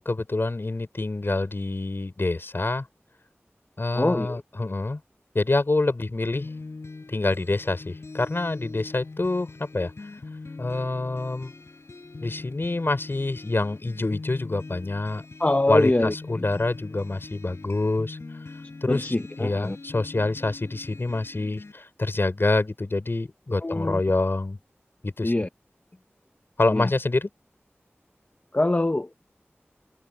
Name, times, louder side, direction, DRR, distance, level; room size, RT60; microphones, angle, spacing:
voice 1, 0.0-2.9 3.8-5.0 5.3-6.5 7.1-9.9 10.6-11.5 12.2-15.2 15.7-18.2 18.8-24.6 25.0-25.3 26.6-27.3, left 2 dB, 55° left, 5.6 m, -26 dB
voice 2, 3.9-4.4 15.4-16.4 18.9-19.8 23.6-24.0 25.2-25.5 26.7-26.9 28.5-29.1, left 2 dB, 35° left, 0.8 m, -24 dB
sound 1, 6.3-21.7, left 3 dB, 80° left, 6.0 m, -42 dB
wide cardioid pair, 45°, 4 cm